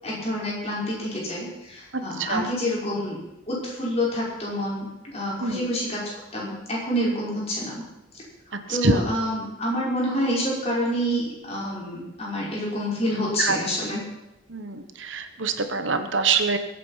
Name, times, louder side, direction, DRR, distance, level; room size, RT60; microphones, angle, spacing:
voice 1, 0.0-3.2 3.5-6.0 6.3-7.8 8.1-14.0, equal, 30° left, -4 dB, 5.5 m, -28 dB
voice 2, 1.9-2.5 5.4-5.6 8.5-9.1 13.4-13.6 14.5-16.6, right 4 dB, 70° right, 8 dB, 1.3 m, -25 dB
22.0 x 8.5 x 5.8 m, 0.90 s
head